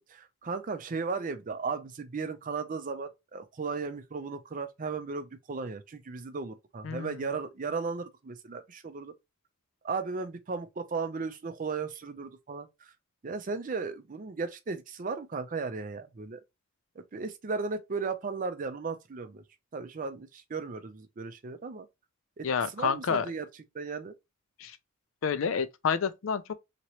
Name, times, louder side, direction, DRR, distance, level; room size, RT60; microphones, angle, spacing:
voice 1, 0.1-9.1 9.8-12.9 13.2-16.4 17.0-19.4 19.7-21.9 22.4-22.5 22.7-23.5 23.7-24.1, right 4 dB, 40° right, 0.5 m, -35 dB
voice 2, 6.8-7.3 22.4-23.3 24.6-24.8 25.2-26.6, left 6 dB, 70° left, 0.4 m, -29 dB
2.9 x 2.9 x 2.9 m
head